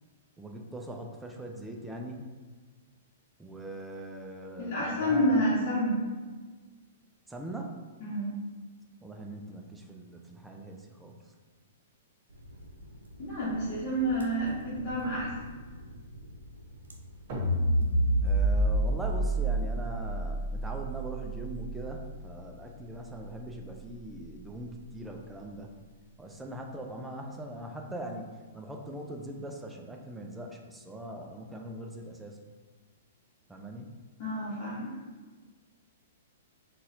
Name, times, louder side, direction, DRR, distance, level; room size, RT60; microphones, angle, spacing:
voice 1, 0.4-2.2 3.4-5.5 7.3-7.8 9.0-11.4 18.2-25.7 26.2-32.4 33.5-33.9, right 1 dB, 10° right, 1 dB, 0.4 m, -41 dB
voice 2, 4.6-6.0 8.0-8.3 13.2-15.3 34.2-35.0, equal, 40° left, -10 dB, 1.0 m, -29 dB
sound 1, 12.3-19.8, equal, 80° right, 0.5 m, -48 dB
sound 2, 17.3-23.6, right 1 dB, 40° right, 1.2 m, -29 dB
3.9 x 2.4 x 2.7 m, 1.4 s
figure-of-eight pair, 110°, 0 cm